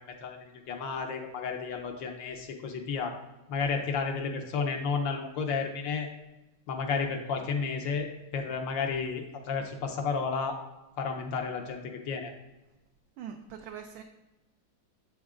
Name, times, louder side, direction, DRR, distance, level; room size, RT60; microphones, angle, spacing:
voice 1, 0.2-3.2 3.5-6.1 6.7-8.1 8.3-10.6 11.0-12.3, left 5 dB, 70° left, 4 dB, 1.4 m, -32 dB
voice 2, 13.2-14.0, right 8 dB, 80° right, 4 dB, 1.4 m, -42 dB
7.9 x 7.2 x 2.5 m, 1.0 s
omnidirectional pair, 2.2 m